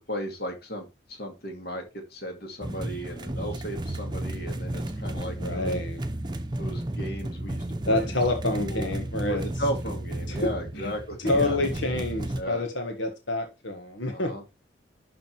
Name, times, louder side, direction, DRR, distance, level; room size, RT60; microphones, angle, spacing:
voice 1, 0.0-5.8 6.6-8.2 8.5-8.9 9.2-11.6 12.4-12.6 14.1-14.4, equal, 55° left, 2.3 m, -35 dB
sound 1, 2.6-12.4, right 1 dB, 25° right, 0.8 m, -33 dB
voice 2, 5.4-6.0 7.8-9.4 10.3-10.5 10.7-10.9 11.2-14.5, left 2 dB, 90° left, 1.7 m, -28 dB
11.5 x 3.9 x 4.6 m
head